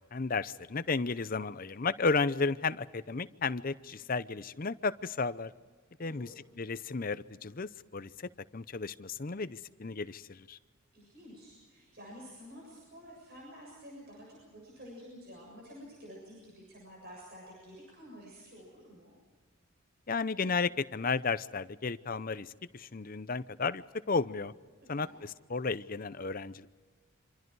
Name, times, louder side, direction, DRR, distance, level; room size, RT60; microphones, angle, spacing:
voice 1, 0.0-5.5 6.0-10.6 20.1-24.5 24.9-26.7, left 4 dB, 40° left, 0.6 m, -33 dB
voice 2, 6.0-6.4 10.9-19.1 25.0-25.1, equal, 45° right, 7.2 m, -50 dB
27.0 x 25.5 x 4.7 m
head